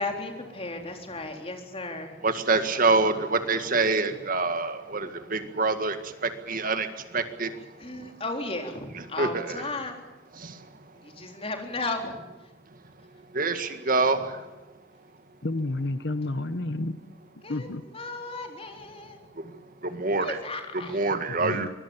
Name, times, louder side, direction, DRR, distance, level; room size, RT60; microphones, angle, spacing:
voice 1, 0.0-2.2 7.8-10.0 11.0-12.2 17.4-17.7 17.9-19.3 20.1-21.0, left 2 dB, 30° left, 4 dB, 3.8 m, -35 dB
voice 2, 2.2-8.2 8.9-9.7 10.3-10.9 11.1-11.3 12.7-12.8 13.3-14.5 19.3-20.4 20.7-21.7, right 3 dB, 45° right, 9 dB, 1.9 m, -27 dB
voice 3, 15.4-17.1 17.5-17.8 21.4-21.7, left 2 dB, 60° left, 12 dB, 1.0 m, -30 dB
25.0 x 21.5 x 7.2 m, 1.1 s
head